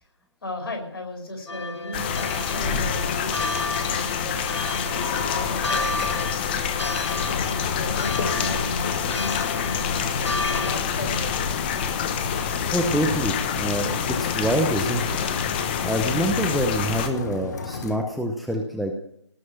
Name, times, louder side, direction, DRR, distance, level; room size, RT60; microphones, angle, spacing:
voice 1, 0.4-3.4 3.9-6.3 6.8-11.6, left 1 dB, 55° left, 3 dB, 5.0 m, -36 dB
sound 1, 1.5-10.7, left 2 dB, 70° left, 1.3 m, -32 dB
sound 2, 1.9-17.1, left 7 dB, 20° left, 1.1 m, -27 dB
sound 3, 7.2-18.0, left 4 dB, 40° left, 1.5 m, -34 dB
voice 2, 12.7-15.0 15.8-18.9, right 1 dB, ahead, 2 dB, 0.7 m, -26 dB
18.5 x 6.3 x 9.8 m, 0.69 s
figure-of-eight pair, 150°, 15 cm